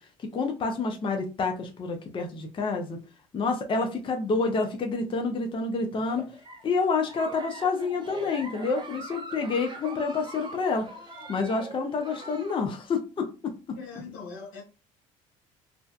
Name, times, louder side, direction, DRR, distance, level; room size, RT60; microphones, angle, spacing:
voice 1, 0.3-3.0 3.3-6.3 6.6-10.9 11.3-13.3 13.7-13.8, left 4 dB, 30° left, 4 dB, 0.5 m, -28 dB
Giggle, 6.0-12.7, right 2 dB, 30° right, 0.7 m, -42 dB
voice 2, 13.7-14.6, left 5 dB, 80° left, 0 dB, 1.0 m, -41 dB
2.6 x 2.1 x 2.3 m, 0.32 s
hypercardioid pair, 65°, 17 cm